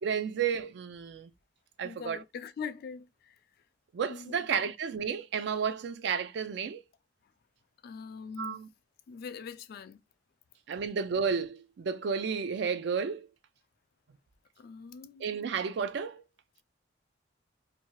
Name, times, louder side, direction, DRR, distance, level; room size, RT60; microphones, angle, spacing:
voice 1, 0.0-1.3 1.8-2.2 3.9-6.8 8.4-8.7 10.7-13.3 15.2-16.2, right 6 dB, 65° right, 0.4 m, -32 dB
voice 2, 1.8-3.4 4.1-4.5 7.8-8.6 9.1-10.0 14.6-15.3, left 6 dB, 55° left, 0.3 m, -42 dB
2.7 x 2.3 x 3.0 m
head